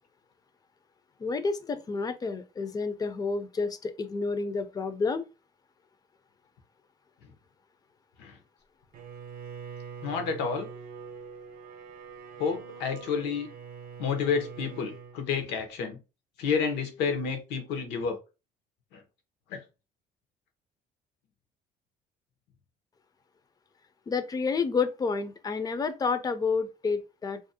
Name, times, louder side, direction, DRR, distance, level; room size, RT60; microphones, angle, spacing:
voice 1, 1.2-5.3 24.1-27.4, left 4 dB, 20° left, 0.3 m, -30 dB
Bowed string instrument, 8.9-15.2, right 6 dB, 60° right, 0.6 m, -44 dB
voice 2, 10.0-10.7 12.4-13.5 14.0-16.0 16.4-18.2 18.9-19.0 19.5-19.6, left 6 dB, 90° left, 0.7 m, -30 dB
2.5 x 2.0 x 2.6 m
cardioid pair, 110°, 17 cm